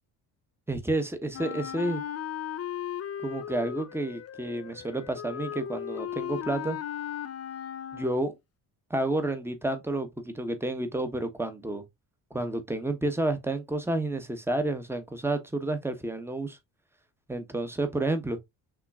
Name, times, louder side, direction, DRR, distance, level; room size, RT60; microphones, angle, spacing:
voice 1, 0.7-2.0 3.2-6.8 7.9-8.3 8.9-11.8 12.3-16.6 17.3-18.4, right 2 dB, 5° right, 1.1 m, -30 dB
Wind instrument woodwind instrument, 1.3-8.3, left 10 dB, 35° left, 0.5 m, -37 dB
5.8 x 3.0 x 2.4 m
supercardioid pair, 75°, 44 cm